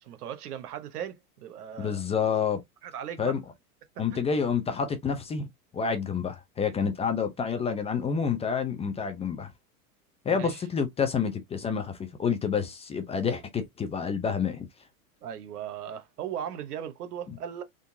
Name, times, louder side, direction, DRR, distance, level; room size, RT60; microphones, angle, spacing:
voice 1, 0.0-2.0 2.8-3.4 4.1-4.3 10.3-10.6 15.2-17.6, right 9 dB, 85° right, 0.9 m, -38 dB
voice 2, 1.8-2.6 3.2-3.4 4.0-5.5 5.7-9.5 10.3-14.7 17.3-17.4, left 6 dB, 15° left, 0.5 m, -28 dB
3.8 x 2.6 x 2.6 m
hypercardioid pair, 120°, 45 cm